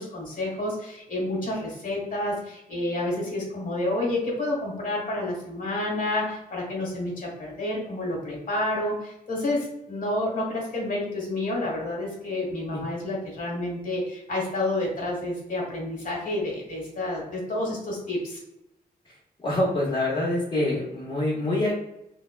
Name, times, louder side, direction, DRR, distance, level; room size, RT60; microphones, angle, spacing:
voice 1, 0.0-18.4, left 1 dB, 55° left, -2 dB, 1.2 m, -29 dB
voice 2, 19.4-21.7, left 1 dB, 30° left, -7 dB, 1.0 m, -25 dB
3.7 x 2.2 x 2.2 m, 0.84 s
wide cardioid pair, 140°, 16 cm